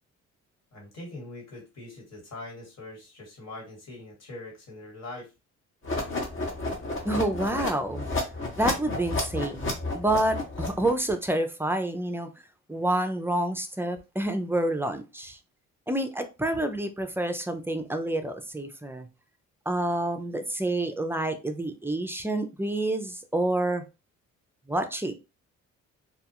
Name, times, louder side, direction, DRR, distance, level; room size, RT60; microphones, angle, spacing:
voice 1, 0.7-5.3, left 2 dB, 60° left, 1.7 m, -42 dB
sound 1, 5.8-11.1, left 2 dB, 45° left, 1.0 m, -31 dB
voice 2, 7.0-8.1 8.6-12.3 12.7-15.4 15.9-19.1 19.7-23.8 24.7-25.1, right 1 dB, 10° right, 0.4 m, -28 dB
2.4 x 2.2 x 2.8 m
cardioid pair, 90°, 30 cm